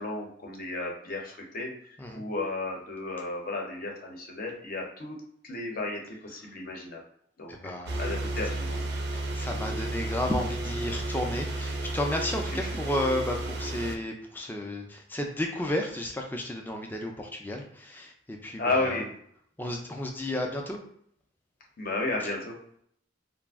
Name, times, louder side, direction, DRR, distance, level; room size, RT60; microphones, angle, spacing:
voice 1, 0.0-1.7 2.1-5.2 5.4-7.0 7.4-8.8 12.5-12.7 18.6-19.1 21.8-22.6, left 2 dB, 50° left, 0 dB, 0.7 m, -33 dB
voice 2, 7.5-8.0 9.1-19.0 19.6-20.8, left 1 dB, 10° left, 2 dB, 0.4 m, -32 dB
sound 1, 7.8-14.0, right 2 dB, 60° right, 0.4 m, -32 dB
2.4 x 2.0 x 3.4 m, 0.66 s
head